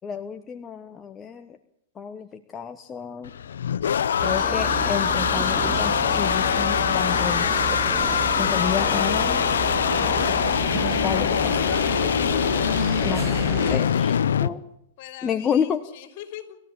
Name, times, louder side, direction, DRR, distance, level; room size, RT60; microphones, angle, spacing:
voice 1, 0.0-1.6 2.0-3.3 4.2-7.5 8.3-9.4 11.0-11.6 13.0-13.3 13.7-14.6 15.2-15.8, left 8 dB, 20° left, 7 dB, 1.0 m, -30 dB
sound 1, 3.2-14.5, left 8 dB, 80° left, 0.7 m, -23 dB
sound 2, 4.2-13.8, right 8 dB, 25° right, 0.8 m, -32 dB
sound 3, 7.0-12.8, right 6 dB, 70° right, 5.9 m, -47 dB
voice 2, 12.9-14.4 15.0-16.6, left 12 dB, 50° left, 7 dB, 3.6 m, -41 dB
26.5 x 13.5 x 8.5 m, 0.77 s
hypercardioid pair, 120°, 0 cm